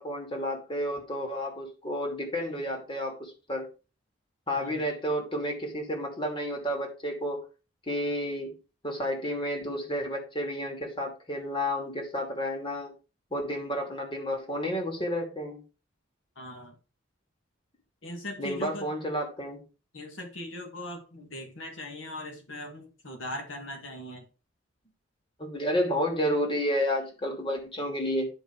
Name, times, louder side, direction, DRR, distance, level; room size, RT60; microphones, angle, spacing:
voice 1, 0.0-3.7 4.5-7.4 7.9-8.6 8.8-12.9 13.3-15.6 18.4-19.6 25.4-28.3, equal, 25° left, 1 dB, 2.8 m, -31 dB
voice 2, 4.5-4.8 16.4-16.8 18.0-18.9 19.9-24.3, left 1 dB, 90° left, 3 dB, 2.3 m, -40 dB
10.5 x 5.3 x 4.8 m, 0.33 s
head